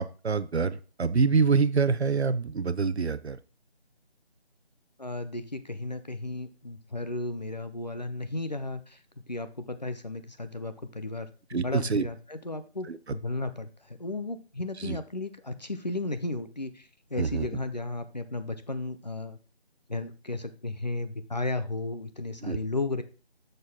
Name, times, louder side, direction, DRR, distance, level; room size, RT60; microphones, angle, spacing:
voice 1, 0.0-3.4 11.5-12.1 12.9-13.0 14.8-15.0 17.2-17.5 22.4-22.6, right 5 dB, 75° right, 14 dB, 0.8 m, -26 dB
voice 2, 5.0-9.0 9.3-19.4 19.9-23.0, left 2 dB, 40° left, 10 dB, 0.6 m, -34 dB
6.7 x 6.5 x 3.5 m, 0.36 s
figure-of-eight pair, 170°, 33 cm